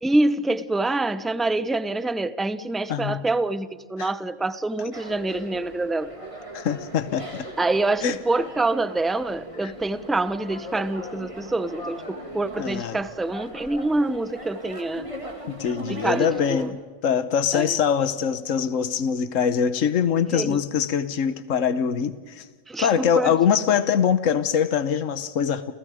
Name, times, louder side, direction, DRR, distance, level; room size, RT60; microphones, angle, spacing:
voice 1, 0.0-6.1 7.6-15.1 15.9-16.7 17.5-17.8 20.3-20.6 22.7-23.3, right 2 dB, ahead, 14 dB, 0.6 m, -26 dB
voice 2, 2.9-3.2 4.0-4.1 6.5-7.5 8.0-8.2 9.6-9.7 12.6-13.0 15.5-22.5 22.8-25.7, left 7 dB, 80° left, 12 dB, 1.4 m, -23 dB
sound 1, 4.9-16.7, equal, 25° right, 3.1 m, -39 dB
30.0 x 29.0 x 5.0 m, 1.4 s
omnidirectional pair, 1.3 m